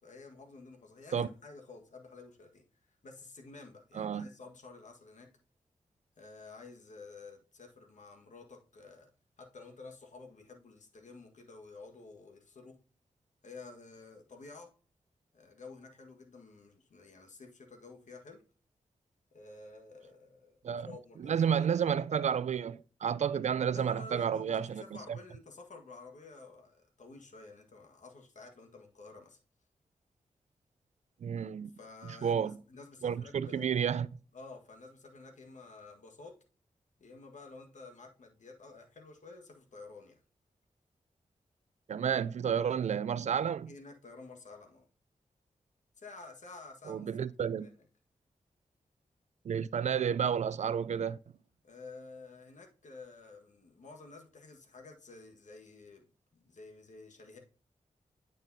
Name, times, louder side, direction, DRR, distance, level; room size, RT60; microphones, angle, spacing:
voice 1, 0.0-2.6 3.0-5.3 6.2-9.1 9.4-12.7 13.4-14.7 15.3-18.4 19.3-21.7 23.7-29.4 31.7-33.7 34.3-36.3 37.0-40.2 43.6-44.8 46.0-47.7 51.6-57.4, left 3 dB, 65° left, 1.6 m, -51 dB
voice 2, 3.9-4.3 20.6-20.9 21.2-24.8 31.2-31.7 32.2-32.6 33.0-34.1 41.9-43.7 46.9-47.7 49.4-51.2, right 8 dB, 60° right, 0.4 m, -31 dB
9.0 x 5.3 x 2.7 m
cardioid pair, 70°, 13 cm